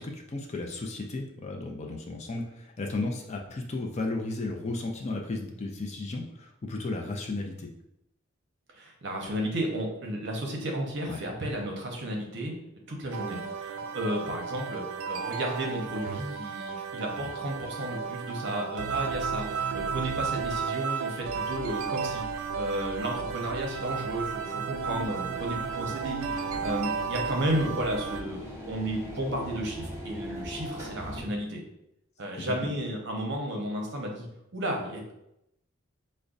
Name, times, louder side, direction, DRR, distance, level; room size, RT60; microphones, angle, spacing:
voice 1, 0.0-7.7 11.1-11.2 32.3-32.7, left 2 dB, 30° left, 2 dB, 0.4 m, -34 dB
voice 2, 8.7-12.5 12.9-31.6 32.2-34.3 34.5-35.1, right 1 dB, 55° right, 1 dB, 0.7 m, -33 dB
sound 1, 13.1-28.2, right 6 dB, 80° right, 0.3 m, -33 dB
sound 2, 24.8-31.2, equal, 15° right, 0.7 m, -40 dB
5.1 x 2.1 x 2.4 m, 0.82 s
head